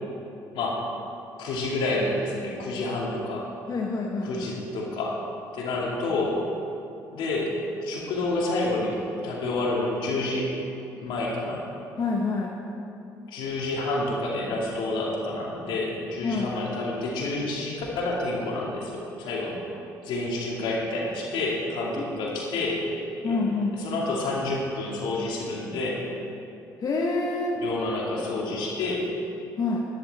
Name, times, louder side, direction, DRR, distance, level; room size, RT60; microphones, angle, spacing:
voice 1, 0.5-0.8 1.4-3.5 4.2-5.2 5.5-6.4 7.1-7.6 7.8-10.5 11.0-11.6 13.3-19.6 20.0-22.8 23.2-23.4 23.7-26.0 27.6-29.1, left 2 dB, 80° left, -3 dB, 2.4 m, -29 dB
voice 2, 3.7-4.4 12.0-12.6 16.2-16.5 22.0-22.2 23.2-23.8 26.8-27.6 29.6-29.9, left 3 dB, 50° left, -1 dB, 1.1 m, -27 dB
11.0 x 10.5 x 4.2 m, 2.8 s
supercardioid pair, 65°, 8 cm